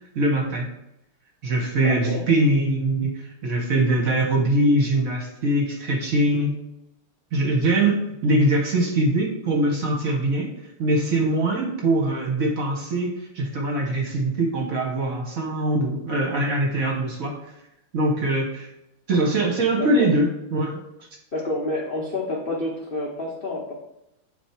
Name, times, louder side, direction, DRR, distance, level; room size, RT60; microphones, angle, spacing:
voice 1, 0.1-0.7 1.4-6.6 7.3-10.5 10.8-17.4 17.9-18.7 19.1-20.8, right 1 dB, 50° right, 0 dB, 1.1 m, -22 dB
voice 2, 1.8-2.2 19.8-20.1 21.3-23.7, left 2 dB, 80° left, -3 dB, 0.5 m, -28 dB
8.3 x 3.0 x 4.4 m, 0.84 s
omnidirectional pair, 2.4 m